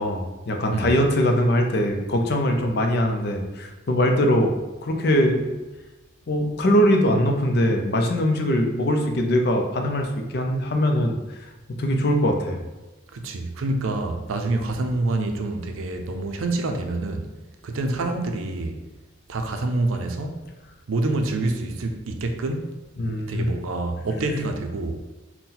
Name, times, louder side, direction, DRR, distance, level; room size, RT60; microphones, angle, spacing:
voice 1, 0.0-4.5 4.8-5.5 6.3-10.1 10.3-11.2 11.8-12.6 23.0-23.5 24.3-24.4, equal, 50° left, 0.5 m, -21 dB
voice 2, 13.1-17.3 17.6-18.8 19.3-20.4 20.9-22.8 23.3-25.0, right 2 dB, 85° right, 0.5 m, -27 dB
3.8 x 2.2 x 4.2 m
head